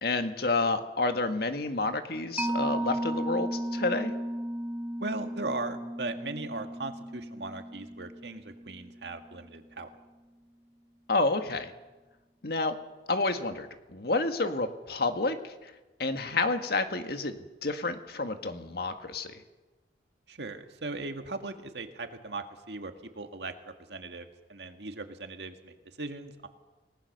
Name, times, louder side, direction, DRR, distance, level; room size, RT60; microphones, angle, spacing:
voice 1, 0.0-4.1 11.1-11.7 12.4-12.8 13.1-15.7 16.0-19.4, left 3 dB, 60° left, 7 dB, 1.8 m, -29 dB
Mallet percussion, 2.4-9.4, right 1 dB, 10° right, 1.1 m, -35 dB
voice 2, 5.0-9.9 20.3-23.5 23.9-26.5, right 3 dB, 75° right, 6 dB, 2.0 m, -38 dB
28.5 x 19.0 x 6.7 m, 1.1 s
head